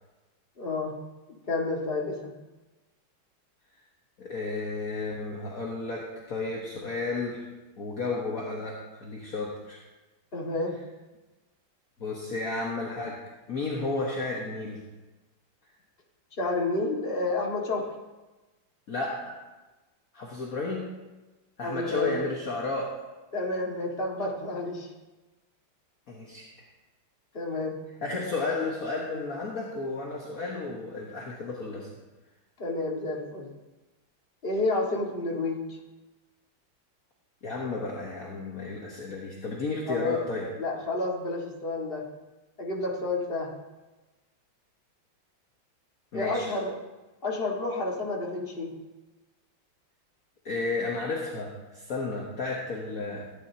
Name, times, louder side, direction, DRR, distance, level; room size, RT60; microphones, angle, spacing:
voice 1, 0.6-1.0 1.5-2.3 10.3-10.8 16.4-17.8 21.6-22.2 23.3-24.9 27.3-27.8 32.6-33.5 34.4-35.8 39.9-40.2 40.6-42.0 42.6-43.5 46.1-46.7 47.2-48.7, left 2 dB, 25° left, -2 dB, 2.0 m, -30 dB
voice 2, 4.2-7.5 7.8-9.8 12.0-13.2 13.5-14.8 18.9-19.4 20.1-20.9 21.6-23.0 26.1-26.5 28.0-31.9 37.4-40.5 46.1-46.5 50.5-53.2, left 3 dB, 45° left, -3 dB, 1.7 m, -32 dB
16.0 x 10.5 x 2.9 m, 1.1 s
omnidirectional pair, 2.3 m